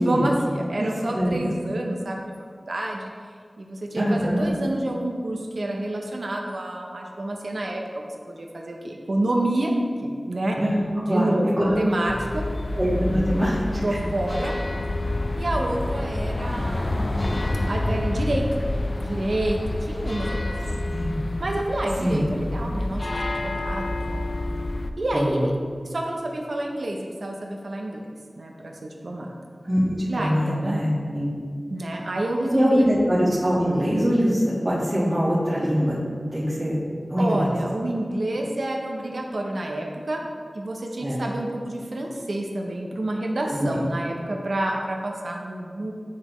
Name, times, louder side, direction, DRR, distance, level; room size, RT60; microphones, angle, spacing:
voice 1, 0.0-3.1 3.6-9.7 10.0-10.6 11.0-12.5 13.8-14.5 15.4-18.5 19.0-20.8 21.4-24.2 25.0-25.5 25.8-29.3 30.1-30.8 31.7-32.9 37.2-40.2 40.5-45.9, right 1 dB, 80° right, 1 dB, 0.6 m, -28 dB
voice 2, 4.0-4.5 10.6-11.3 11.6-11.8 12.7-13.9 20.8-21.2 22.0-22.2 25.1-25.4 29.6-31.3 32.5-36.0 36.3-36.8 37.1-37.5 41.0-41.2 43.5-43.8, equal, 40° right, -10 dB, 1.4 m, -23 dB
sound 1, 12.1-24.9, left 1 dB, 55° left, 0.3 m, -28 dB
9.5 x 3.8 x 3.0 m, 2.1 s
wide cardioid pair, 40°, 0 cm